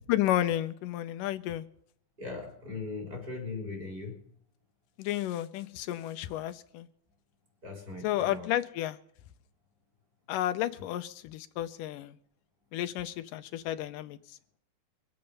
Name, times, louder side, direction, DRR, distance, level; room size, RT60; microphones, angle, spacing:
voice 1, 0.1-1.7 5.0-6.9 8.0-9.0 10.3-12.2 12.7-14.4, left 13 dB, 80° left, 11 dB, 2.3 m, -32 dB
voice 2, 2.2-4.2 7.6-8.5, left 3 dB, 25° right, 2 dB, 4.2 m, -39 dB
23.5 x 8.6 x 5.3 m, 0.65 s
omnidirectional pair, 3.8 m